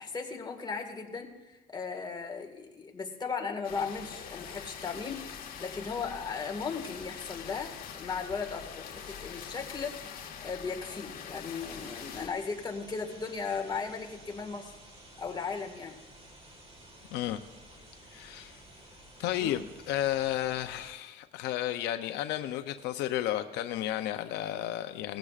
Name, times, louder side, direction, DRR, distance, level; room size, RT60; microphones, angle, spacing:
voice 1, 0.0-14.7 15.2-15.9 19.4-19.7, left 5 dB, 25° left, 2 dB, 1.8 m, -37 dB
sound 1, 3.6-12.3, left 7 dB, 60° left, 1.5 m, -44 dB
sound 2, 11.6-20.9, right 1 dB, 35° right, 2.9 m, -53 dB
voice 2, 18.1-18.6 19.2-25.2, left 13 dB, 85° left, 9 dB, 0.6 m, -32 dB
18.5 x 15.0 x 2.5 m, 1.1 s
cardioid pair, 110°, 17 cm